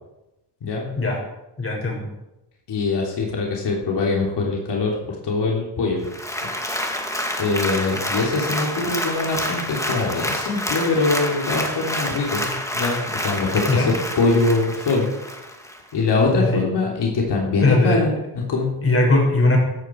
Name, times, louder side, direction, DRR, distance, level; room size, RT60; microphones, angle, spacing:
voice 1, 0.6-0.9 2.7-6.1 7.4-15.1 15.9-18.7, left 3 dB, 80° left, -2 dB, 3.5 m, -23 dB
voice 2, 1.6-2.1 13.7-13.9 16.3-16.6 17.6-18.0 18.8-19.6, left 2 dB, 35° left, -1 dB, 6.1 m, -19 dB
Applause, 6.0-15.8 16.2-16.3, left 1 dB, 5° left, 2.2 m, -28 dB
15.5 x 13.5 x 4.7 m, 0.94 s
wide cardioid pair, 120°, 40 cm